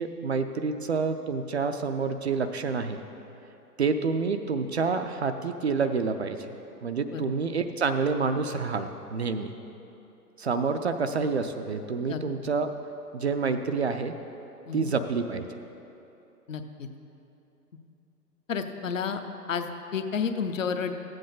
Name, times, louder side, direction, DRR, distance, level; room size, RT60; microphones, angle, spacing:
voice 1, 0.0-3.0 3.8-6.5 6.8-9.6 10.4-12.7 13.1-14.1 14.7-15.5, right 4 dB, 45° right, 7 dB, 0.5 m, -28 dB
voice 2, 16.5-16.9 18.5-19.2 19.5-20.9, left 6 dB, 55° left, 7 dB, 0.8 m, -31 dB
14.5 x 7.8 x 3.8 m, 2.9 s
figure-of-eight pair, 120°, 48 cm